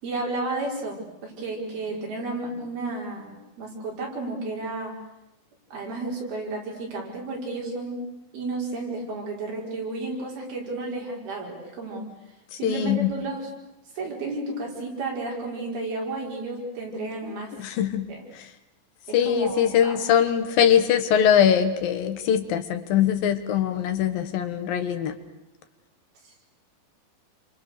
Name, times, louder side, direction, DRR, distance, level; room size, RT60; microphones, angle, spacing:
voice 1, 0.0-4.9 5.7-8.0 8.3-12.1 12.5-13.5 14.0-17.5 18.1-18.2 19.1-20.0 26.2-26.5, right 2 dB, 80° right, -2 dB, 7.3 m, -32 dB
voice 2, 12.5-13.1 17.5-18.1 18.3-18.5 19.1-25.1, left 9 dB, 70° left, 9 dB, 3.1 m, -22 dB
28.5 x 25.5 x 6.8 m, 0.92 s
omnidirectional pair, 4.3 m